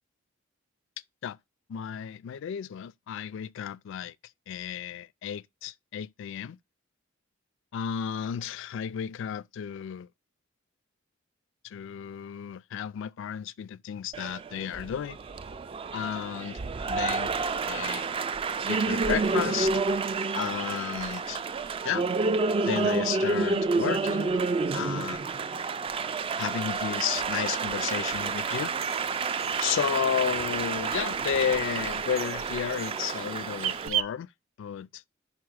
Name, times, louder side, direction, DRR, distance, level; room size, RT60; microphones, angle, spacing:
voice 1, 1.7-4.1 4.5-6.6 7.7-10.1 11.6-15.2 15.9-16.6 16.9-17.3 17.7-18.1 18.7-19.7 20.3-21.4 21.8-22.0 22.7-24.4 24.7-25.2 26.4-28.7 29.6-34.3 34.6-35.0, left 8 dB, 65° left, 0.3 m, -32 dB
Applause, 14.1-33.9, right 4 dB, 25° right, 0.3 m, -29 dB
sound 1, 28.0-34.0, right 11 dB, 75° right, 0.6 m, -38 dB
5.7 x 4.7 x 4.7 m
head